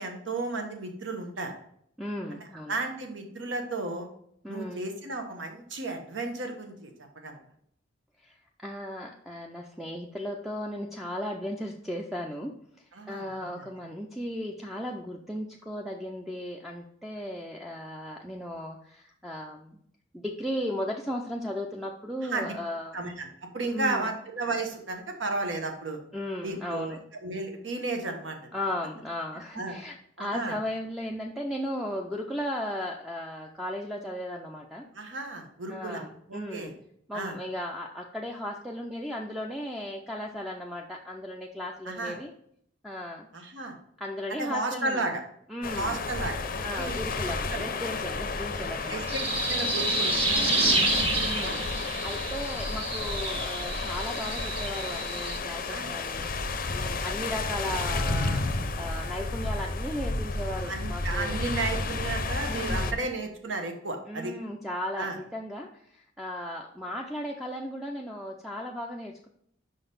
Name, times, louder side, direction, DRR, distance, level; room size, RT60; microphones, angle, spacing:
voice 1, 0.0-1.5 2.3-2.4 2.7-4.1 4.5-7.4 12.9-13.6 22.3-22.5 22.9-23.3 23.5-26.0 26.4-27.0 27.2-28.4 29.5-29.8 30.2-30.6 34.9-36.0 36.3-36.7 37.1-37.3 41.9-42.2 43.3-43.7 44.4-45.2 45.8-47.0 47.5-47.7 48.9-49.2 49.5-50.9 51.4-51.6 55.7-55.9 60.7-64.3 65.0-65.2, right 3 dB, 75° right, 4 dB, 1.1 m, -33 dB
voice 2, 2.0-2.8 4.4-4.8 8.2-19.8 20.1-23.0 23.7-24.1 26.1-27.0 28.5-34.9 35.7-36.7 37.1-42.3 42.8-43.3 44.0-45.1 45.5-46.0 46.6-49.1 50.5-51.0 51.3-56.3 56.7-61.4 62.5-63.0 64.1-69.3, left 1 dB, ahead, 0 dB, 0.4 m, -36 dB
Waves at the beach, 45.6-62.9, left 3 dB, 50° left, 0.6 m, -32 dB
sound 1, 48.8-55.4, right 2 dB, 30° right, 1.1 m, -29 dB
5.4 x 4.0 x 5.3 m, 0.68 s
head